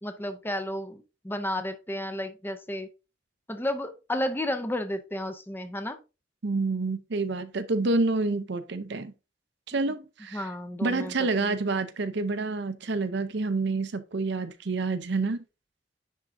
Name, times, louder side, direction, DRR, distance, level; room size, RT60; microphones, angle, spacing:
voice 1, 0.0-2.9 3.5-6.0 10.3-11.6, left 1 dB, 10° left, 0.6 m, -32 dB
voice 2, 6.4-9.1 9.7-10.5 10.8-15.4, right 3 dB, 65° right, 0.7 m, -28 dB
10.0 x 3.7 x 2.7 m
head